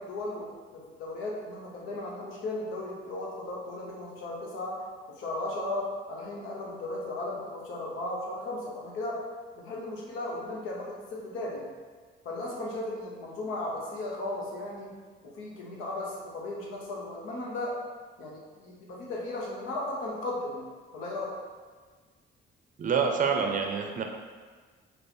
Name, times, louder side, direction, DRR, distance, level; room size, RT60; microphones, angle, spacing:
voice 1, 0.0-9.2 9.5-11.7 12.2-14.9 15.2-17.8 18.2-21.3, left 2 dB, 90° left, -3 dB, 1.0 m, -36 dB
voice 2, 22.8-24.0, right 6 dB, 40° right, 4 dB, 0.5 m, -27 dB
5.3 x 2.1 x 4.3 m, 1.5 s
cardioid pair, 90°, 20 cm